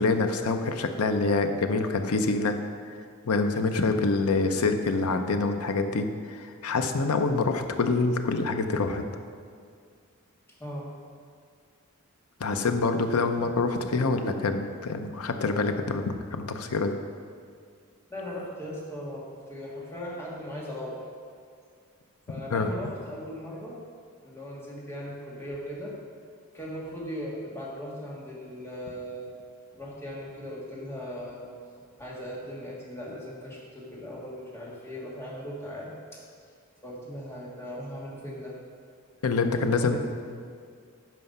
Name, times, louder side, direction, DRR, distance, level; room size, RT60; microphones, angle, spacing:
voice 1, 0.0-2.6 3.3-9.1 12.4-16.9 22.5-22.7 39.2-40.0, left 3 dB, 85° left, 7 dB, 0.7 m, -26 dB
voice 2, 10.6-10.9 18.1-21.0 22.3-23.8 24.2-25.9 26.5-29.3 29.7-31.4 32.0-36.2 36.8-38.5 39.8-40.0, equal, 10° left, -5 dB, 1.7 m, -38 dB
9.3 x 5.7 x 5.5 m, 2.2 s
head